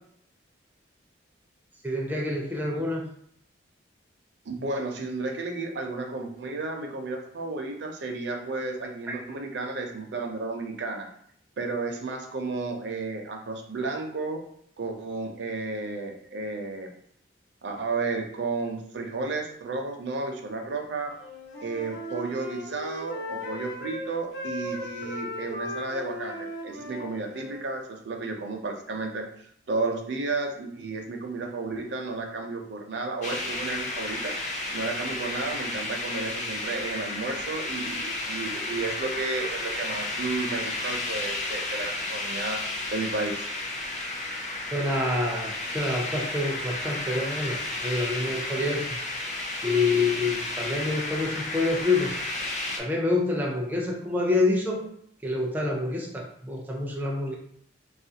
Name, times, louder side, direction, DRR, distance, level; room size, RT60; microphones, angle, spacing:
voice 1, 1.8-3.0 44.7-48.9 49.6-52.1 52.8-54.9 55.2-57.4, left 2 dB, 10° right, -2 dB, 0.4 m, -27 dB
voice 2, 4.5-11.1 11.6-14.4 14.8-16.9 17.6-21.2 21.6-34.4 34.7-42.6 42.9-43.5, right 3 dB, 65° right, 3 dB, 0.5 m, -32 dB
Wind instrument woodwind instrument, 21.2-24.1 24.3-27.6, left 1 dB, 90° left, 0.9 m, -37 dB
sound 1, 33.2-52.8, left 2 dB, 40° left, 0.5 m, -32 dB
3.5 x 2.4 x 2.7 m, 0.66 s
head